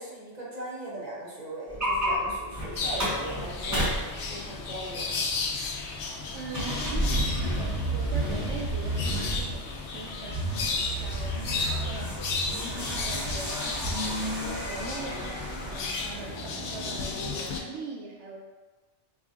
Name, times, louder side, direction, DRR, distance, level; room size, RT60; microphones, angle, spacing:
voice 1, 0.0-3.9 4.3-5.2, right 1 dB, 40° right, -6 dB, 1.2 m, -38 dB
sound 1, 1.7-17.4, right 1 dB, 15° right, 0.8 m, -32 dB
sound 2, 2.8-17.6, left 4 dB, 85° left, 1.0 m, -34 dB
sound 3, 5.7-16.4, left 1 dB, 25° left, 0.8 m, -48 dB
voice 2, 6.3-18.4, right 3 dB, 75° right, -1 dB, 0.9 m, -42 dB
4.5 x 2.6 x 3.7 m, 1.3 s
omnidirectional pair, 1.2 m